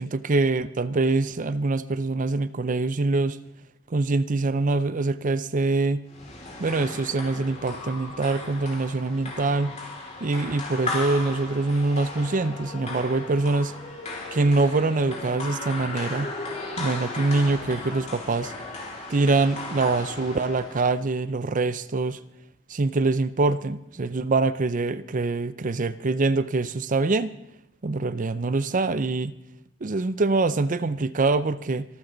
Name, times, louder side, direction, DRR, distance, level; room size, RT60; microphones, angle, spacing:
voice 1, 0.0-3.4 3.9-6.0 6.6-9.8 10.2-13.7 14.3-16.3 16.8-18.5 19.1-22.2 22.7-27.3 27.8-29.3 29.8-31.9, right 3 dB, 40° right, 14 dB, 0.6 m, -24 dB
sound 1, 6.1-20.9, left 2 dB, 35° left, 5.1 m, -36 dB
25.5 x 13.0 x 3.9 m, 0.83 s
head